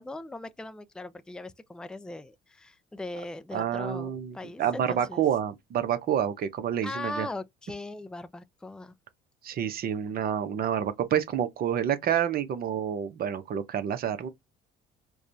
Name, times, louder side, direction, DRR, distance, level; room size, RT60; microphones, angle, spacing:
voice 1, 0.0-5.2 6.8-8.9, left 2 dB, 5° left, 0.4 m, -39 dB
voice 2, 3.5-7.3 9.4-14.3, right 9 dB, 55° right, 0.9 m, -28 dB
4.6 x 2.3 x 2.7 m
supercardioid pair, 90°, 19 cm